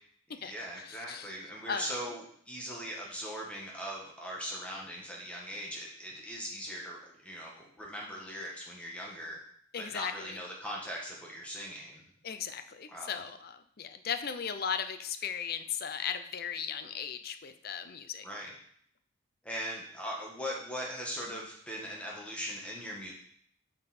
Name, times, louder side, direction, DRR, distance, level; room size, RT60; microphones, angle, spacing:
voice 1, 0.3-9.4 9.8-12.0 12.9-13.2 18.2-18.6 19.4-23.1, equal, 5° left, -3 dB, 1.6 m, -40 dB
voice 2, 9.7-10.1 12.2-13.5 13.8-18.2, left 7 dB, 45° left, 10 dB, 0.5 m, -36 dB
8.1 x 5.4 x 4.2 m, 0.63 s
head